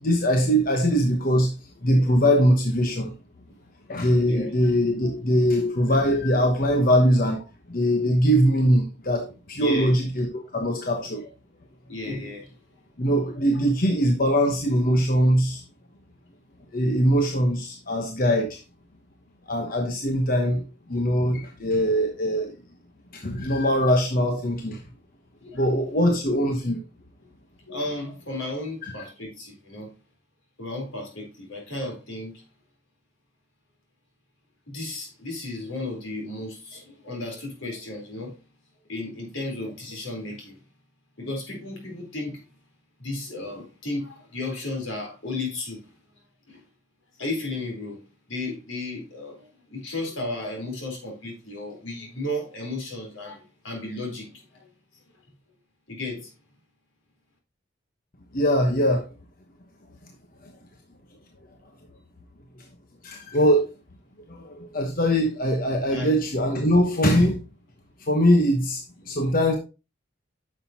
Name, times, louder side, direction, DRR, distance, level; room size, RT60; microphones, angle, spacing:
voice 1, 0.0-1.5 1.8-3.1 3.9-7.4 7.7-11.3 13.0-15.6 16.7-18.6 19.5-22.5 23.1-24.8 25.5-26.8 28.8-28.9 58.3-59.0 60.4-60.5 62.6-62.7 63.0-63.7 64.3-67.4 68.0-69.6, equal, 45° left, 1.1 m, -22 dB
voice 2, 9.6-10.0 10.5-10.6 11.9-12.5 19.7-19.8 25.4-25.6 27.7-29.9 30.6-32.4 34.7-38.3 38.9-40.6 41.2-42.4 43.0-45.8 46.5-46.6 47.2-48.0 48.3-54.6 55.9-56.3 65.9-66.2, left 2 dB, 80° left, 4.1 m, -34 dB
9.6 x 6.6 x 2.9 m
head